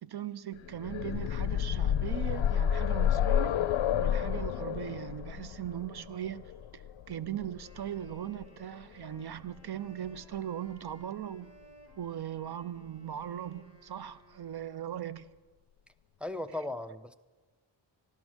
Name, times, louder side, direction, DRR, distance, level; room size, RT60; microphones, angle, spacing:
voice 1, 0.0-3.6 4.0-6.8 7.1-11.5 12.0-15.3, right 10 dB, 55° right, 0.6 m, -39 dB
sound 1, 0.6-8.4 9.6-9.7 10.1-10.2, left 9 dB, 80° left, 0.6 m, -30 dB
Wind instrument woodwind instrument, 7.5-15.2, equal, 30° right, 2.3 m, -59 dB
voice 2, 16.2-17.1, left 1 dB, 5° right, 0.4 m, -37 dB
14.5 x 12.0 x 6.2 m
wide cardioid pair, 145°, 46 cm